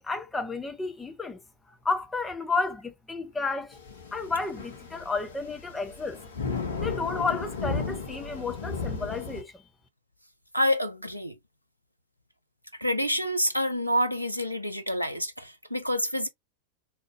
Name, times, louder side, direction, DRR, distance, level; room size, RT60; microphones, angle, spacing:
voice 1, 0.0-1.4 1.8-3.8 4.1-6.3 6.8-9.6, left 4 dB, 10° left, 0.7 m, -32 dB
sound 1, 3.7-9.4, left 4 dB, 65° left, 1.0 m, -35 dB
voice 2, 10.5-11.3 12.8-16.3, equal, 90° left, 0.6 m, -27 dB
3.7 x 2.9 x 2.3 m
figure-of-eight pair, 90°, 0 cm